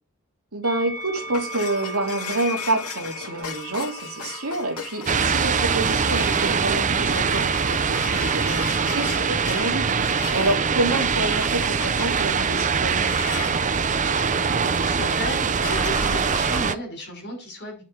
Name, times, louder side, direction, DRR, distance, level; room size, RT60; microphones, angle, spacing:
voice 1, 0.5-13.6, right 2 dB, 70° right, 2.9 m, -28 dB
Musical instrument, 0.6-7.0 7.9-8.9, right 2 dB, 30° left, 5.5 m, -40 dB
sound 1, 0.7-16.7, left 6 dB, 85° left, 2.2 m, -37 dB
sound 2, 5.1-16.7, right 5 dB, 35° right, 0.6 m, -23 dB
voice 2, 14.6-17.8, left 1 dB, 50° left, 6.0 m, -34 dB
9.5 x 7.4 x 4.7 m
head